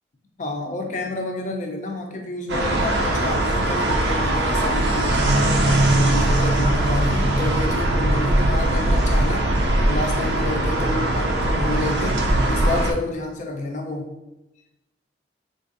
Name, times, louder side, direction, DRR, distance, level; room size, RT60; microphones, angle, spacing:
voice 1, 0.4-9.5 9.9-14.2, left 2 dB, 40° left, 2 dB, 0.5 m, -29 dB
sound 1, 2.5-12.9, right 1 dB, 70° right, 0.4 m, -20 dB
3.8 x 2.5 x 2.5 m, 0.94 s
head